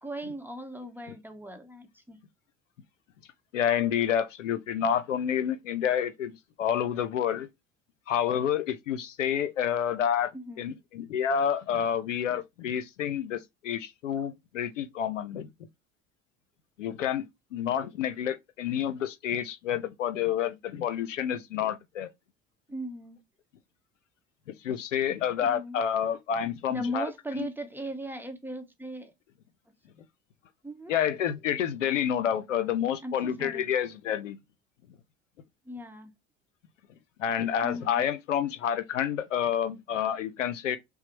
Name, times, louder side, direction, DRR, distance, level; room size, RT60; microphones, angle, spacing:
voice 1, 0.0-2.2 10.3-10.8 22.7-23.2 25.4-25.8 26.7-29.1 30.6-30.9 33.0-33.7 35.7-36.1 37.6-38.1, equal, 5° right, 0.9 m, -38 dB
voice 2, 3.5-7.5 8.1-10.3 10.6-15.5 16.8-17.3 17.5-22.1 24.6-27.1 27.4-27.5 30.9-34.4 37.2-40.8, left 9 dB, 90° left, 0.5 m, -29 dB
5.7 x 2.0 x 2.9 m
hypercardioid pair, 65°, 36 cm